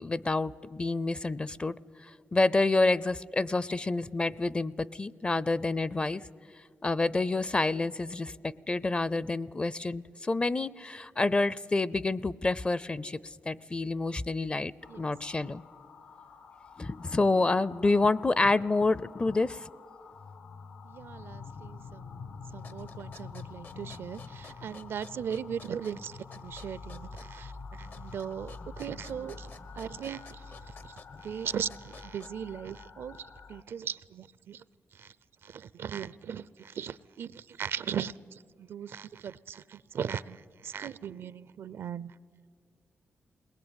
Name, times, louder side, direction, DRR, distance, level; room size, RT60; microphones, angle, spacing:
voice 1, 0.0-1.8 2.3-6.2 6.8-15.6 16.8-19.7, left 3 dB, 25° left, 21 dB, 0.5 m, -28 dB
sound 1, 14.8-33.6, left 5 dB, 80° left, 1.5 m, -47 dB
voice 2, 20.8-29.5 29.7-30.5 30.8-30.9 31.2-34.6 34.9-35.1 35.4-42.1, right 8 dB, 75° right, 19 dB, 0.5 m, -38 dB
sound 2, 22.5-32.6, left 4 dB, 65° left, 1.1 m, -53 dB
21.5 x 19.5 x 9.0 m, 2.1 s
cardioid pair, 85°, 4 cm